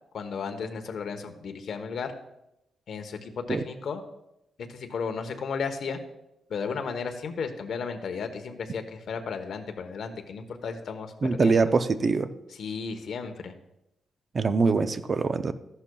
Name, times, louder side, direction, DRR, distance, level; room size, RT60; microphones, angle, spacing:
voice 1, 0.1-2.1 2.9-4.0 4.7-6.0 6.5-11.7 12.6-13.5, left 5 dB, 60° left, 6 dB, 1.0 m, -34 dB
voice 2, 11.2-12.3 14.3-15.5, right 4 dB, 35° right, 11 dB, 0.5 m, -23 dB
14.0 x 11.0 x 2.3 m, 0.87 s
wide cardioid pair, 145°, 0 cm